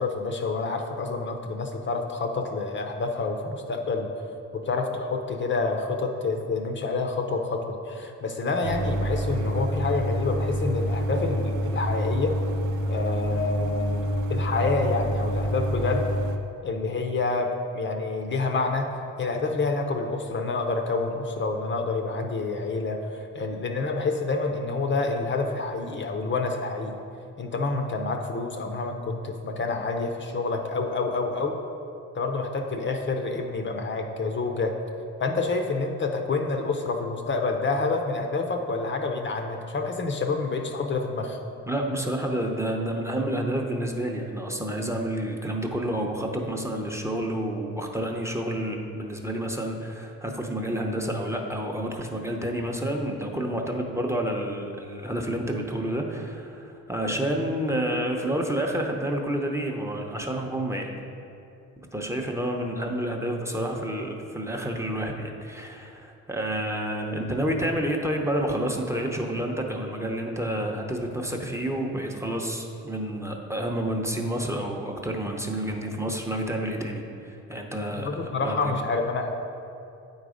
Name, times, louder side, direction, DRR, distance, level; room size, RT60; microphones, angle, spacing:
voice 1, 0.0-4.1 4.5-12.4 12.9-16.1 16.6-18.9 19.2-26.9 27.4-31.5 32.1-34.7 35.2-41.4 78.0-79.3, left 3 dB, 40° left, 4 dB, 0.7 m, -28 dB
sound 1, 8.6-16.4, equal, 75° right, 0.6 m, -27 dB
voice 2, 41.7-60.9 61.9-78.7, right 1 dB, 10° right, 1 dB, 0.7 m, -29 dB
8.6 x 4.0 x 4.9 m, 2.6 s
cardioid pair, 90°, 30 cm